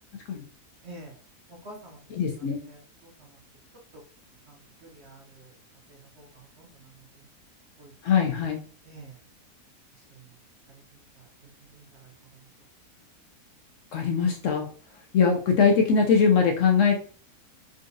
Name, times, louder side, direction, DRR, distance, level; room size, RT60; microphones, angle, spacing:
voice 1, 0.8-1.2 1.5-2.0 2.7-3.4 3.9-4.0 4.5-5.6 5.9-7.3 7.8-8.4 8.8-9.2 9.9-10.4 10.7-12.1, right 2 dB, 55° right, -1 dB, 0.9 m, -50 dB
voice 2, 2.2-2.6 8.0-8.6 13.9-14.7 15.1-16.9, left 6 dB, 70° left, 2 dB, 0.8 m, -21 dB
3.9 x 2.4 x 2.6 m, 0.42 s
omnidirectional pair, 1.6 m